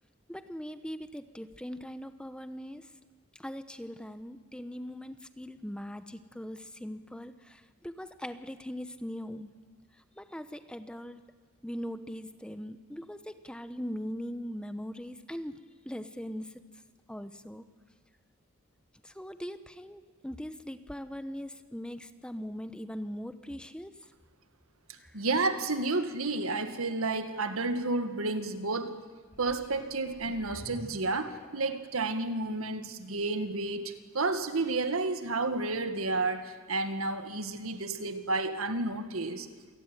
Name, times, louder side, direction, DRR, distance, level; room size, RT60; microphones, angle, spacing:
voice 1, 0.3-2.9 3.3-9.6 10.2-11.2 11.6-16.8 17.1-17.6 19.0-24.1 25.0-25.2, equal, 5° left, 10 dB, 0.9 m, -41 dB
voice 2, 25.1-29.0 29.4-39.5, right 3 dB, 80° right, 8 dB, 1.8 m, -31 dB
sound 1, 29.2-31.9 32.5-32.6, equal, 30° left, 2.1 m, -49 dB
27.0 x 18.0 x 9.2 m, 1.5 s
head